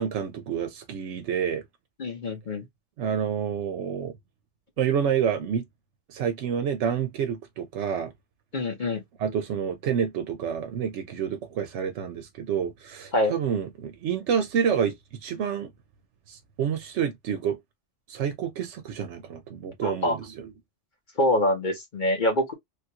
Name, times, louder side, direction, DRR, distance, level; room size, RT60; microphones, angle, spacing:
voice 1, 0.0-1.6 3.0-4.1 4.8-5.6 6.1-8.1 9.2-14.9 15.2-15.7 16.3-17.6 18.1-20.5, right 8 dB, 90° right, 0.9 m, -28 dB
voice 2, 2.0-2.6 8.5-9.0 13.1-13.3 19.8-20.2 21.2-22.5, left 1 dB, 45° left, 1.1 m, -25 dB
3.3 x 2.4 x 2.8 m
omnidirectional pair, 1.2 m